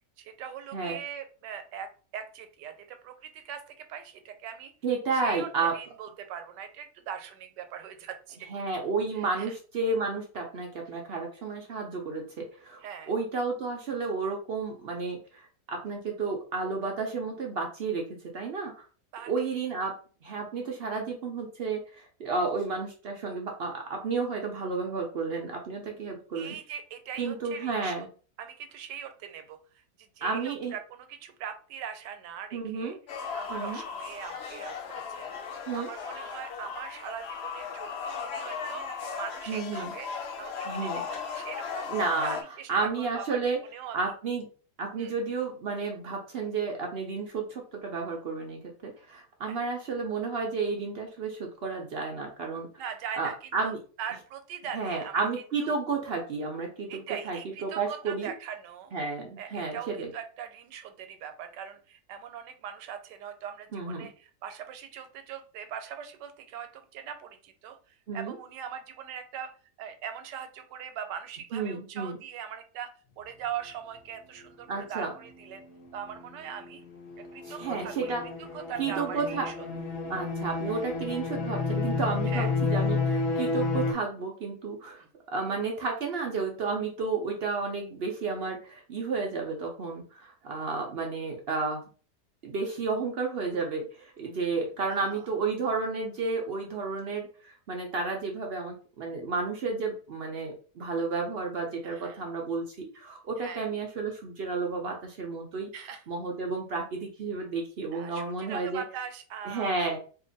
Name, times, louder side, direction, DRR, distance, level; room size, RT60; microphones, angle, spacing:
voice 1, 0.2-1.9 2.1-4.7 5.1-8.5 9.1-9.5 12.8-13.1 19.1-19.6 26.3-28.1 28.4-33.0 33.3-41.9 42.2-44.1 45.0-45.1 49.4-49.6 52.8-55.2 55.6-55.7 56.9-58.9 59.4-69.5 69.8-72.9 73.2-75.6 75.9-76.8 77.3-78.1 78.4-79.7 82.3-82.5 85.0-85.1 94.9-95.3 101.8-102.2 103.4-103.6 105.7-106.0 107.9-110.0, right 8 dB, 85° right, 7 dB, 1.3 m, -41 dB
voice 2, 4.8-5.7 8.5-18.0 18.3-18.7 19.3-19.9 20.2-26.6 27.2-28.1 30.2-30.7 32.5-33.0 33.5-33.8 35.7-35.9 39.5-39.9 40.7-41.1 41.9-42.4 42.7-43.6 43.9-44.5 44.8-52.7 53.1-53.8 54.7-58.3 58.9-60.1 63.7-64.1 68.1-68.3 71.5-72.2 74.7-75.1 77.5-78.2 78.8-79.5 80.1-91.9 92.4-105.7 106.1-108.8 109.5-110.0, right 4 dB, 65° right, 1 dB, 0.6 m, -32 dB
sound 1, 33.1-42.4, left 6 dB, 85° left, 0.5 m, -37 dB
sound 2, 75.2-83.9, left 4 dB, 65° left, 0.9 m, -31 dB
2.8 x 2.5 x 3.8 m, 0.39 s
omnidirectional pair, 1.8 m